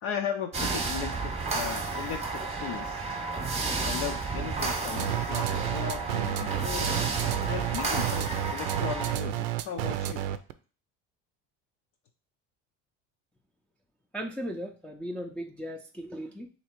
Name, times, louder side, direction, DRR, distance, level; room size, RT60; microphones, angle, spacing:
voice 1, 0.0-3.2 3.8-6.9 7.5-10.2, left 8 dB, 75° left, 2 dB, 0.6 m, -37 dB
sound 1, 0.5-9.1, right 4 dB, 20° right, 0.8 m, -32 dB
sound 2, 5.0-10.5, right 12 dB, 80° right, 0.5 m, -31 dB
voice 2, 14.1-16.5, equal, 5° left, 0 dB, 0.4 m, -37 dB
3.2 x 2.9 x 4.4 m, 0.37 s
supercardioid pair, 95°, 34 cm